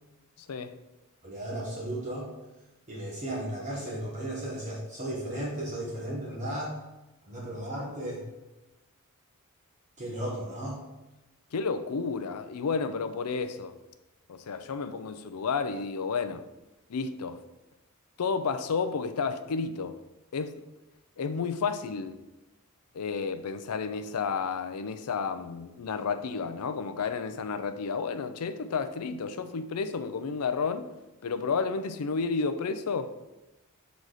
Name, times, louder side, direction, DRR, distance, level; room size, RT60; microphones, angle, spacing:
voice 1, 1.2-2.3 2.9-6.8 7.3-8.2 10.0-10.8, right 1 dB, 35° right, 1.2 m, -35 dB
voice 2, 11.5-13.8 14.3-16.5 16.9-17.4 18.2-20.0 20.3-20.6 21.2-22.2 22.9-30.9 31.2-33.1, left 5 dB, 90° left, 0.5 m, -31 dB
6.2 x 4.0 x 4.9 m
head